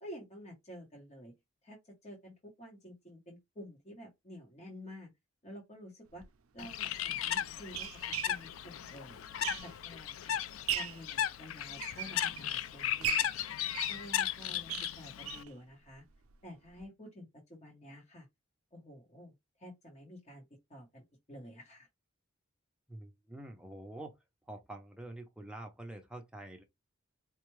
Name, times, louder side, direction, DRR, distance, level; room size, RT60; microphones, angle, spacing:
voice 1, 0.0-1.3 1.6-5.1 5.4-6.2 6.5-7.9 8.3-9.2 9.6-10.4 10.7-13.5 13.9-16.0 16.4-18.3 18.7-19.3 19.6-20.4 20.7-21.9, equal, 30° left, 1.0 m, -50 dB
sound 1, 6.1-6.3 7.0-10.0 10.4-11.1 11.6-12.6 13.0-15.5 15.9-16.0 16.3-16.4 16.7-16.8, right 10 dB, 80° right, 0.5 m, -39 dB
Bird, 6.6-15.4, left 11 dB, 70° left, 0.3 m, -36 dB
voice 2, 22.9-24.2 24.5-26.6, right 1 dB, 5° right, 0.6 m, -46 dB
4.4 x 2.3 x 3.1 m
head